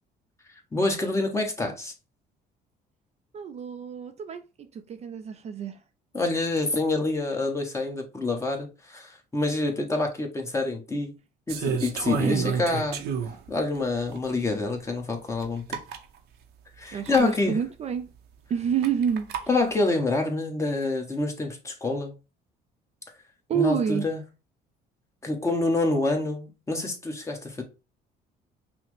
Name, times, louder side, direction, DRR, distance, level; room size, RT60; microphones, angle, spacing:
voice 1, 0.5-1.9 6.1-11.1 11.5-13.0 13.5-15.6 16.8-17.6 19.5-22.1 23.5-24.2 25.2-27.6, left 2 dB, 15° left, 1.1 m, -27 dB
voice 2, 3.3-5.8 12.2-12.5 16.9-18.1 18.5-19.3 23.5-24.1, right 7 dB, 40° right, 0.4 m, -28 dB
sound 1, 11.5-13.5 14.1-14.2 15.4-15.5 15.7-16.0 17.0-17.3 18.8-19.5, right 7 dB, 80° right, 0.7 m, -30 dB
5.6 x 2.1 x 3.1 m
cardioid pair, 110°, 17 cm